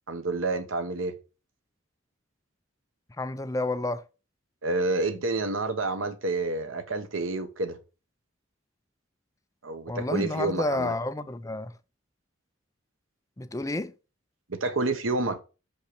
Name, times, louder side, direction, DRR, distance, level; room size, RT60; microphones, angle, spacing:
voice 1, 0.1-1.2 4.6-7.8 9.6-10.9 14.5-15.4, right 3 dB, 85° right, 1.1 m, -29 dB
voice 2, 3.2-4.0 9.9-11.7 13.4-13.9, left 2 dB, 15° left, 0.5 m, -30 dB
6.4 x 5.5 x 6.6 m
head